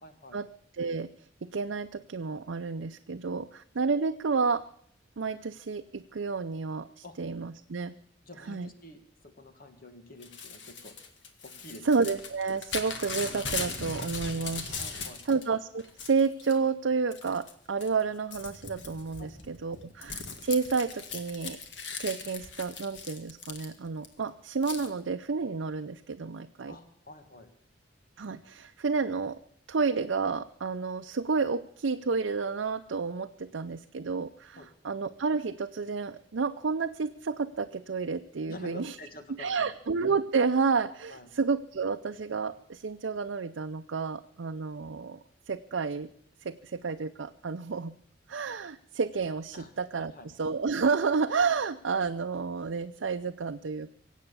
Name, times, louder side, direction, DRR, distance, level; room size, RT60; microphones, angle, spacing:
voice 1, 0.0-0.4 7.0-7.2 8.2-10.9 11.4-11.9 14.8-15.4 19.2-19.3 19.7-19.8 26.7-27.5 34.6-34.7 38.5-39.7 41.1-41.3 49.5-49.7 50.0-50.3, left 2 dB, 50° left, 7 dB, 1.9 m, -48 dB
voice 2, 0.8-1.1 1.4-4.6 5.2-7.9 8.5-8.7 11.8-14.8 15.2-21.6 22.0-26.8 28.2-29.4 29.7-39.0 39.4-45.2 45.5-46.1 46.4-48.0 48.3-53.9, right 4 dB, 75° right, 7 dB, 0.6 m, -30 dB
Crumpling crinkling / Tearing, 10.2-15.4 15.8-16.6 17.1-17.5 17.8-24.1 24.6-24.9, left 4 dB, 70° left, 1.9 m, -39 dB
24.0 x 8.3 x 6.9 m, 0.68 s
head